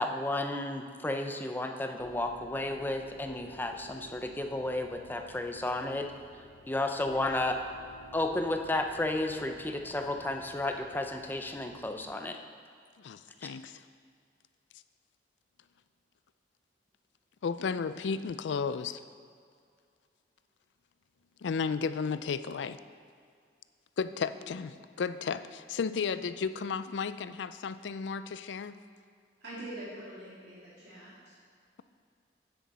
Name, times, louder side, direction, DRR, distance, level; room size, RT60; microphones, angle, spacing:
voice 1, 0.0-6.1 6.7-7.6 8.1-12.4, left 2 dB, 10° left, 5 dB, 0.5 m, -32 dB
sound 1, 2.0-12.1, right 1 dB, 50° left, 0.7 m, -53 dB
voice 2, 13.0-13.8 17.4-19.0 21.4-22.8 24.0-28.8, left 5 dB, 85° left, 13 dB, 0.4 m, -33 dB
voice 3, 29.4-31.4, right 1 dB, 75° right, -9 dB, 2.6 m, -44 dB
9.7 x 7.9 x 4.2 m, 2.2 s
head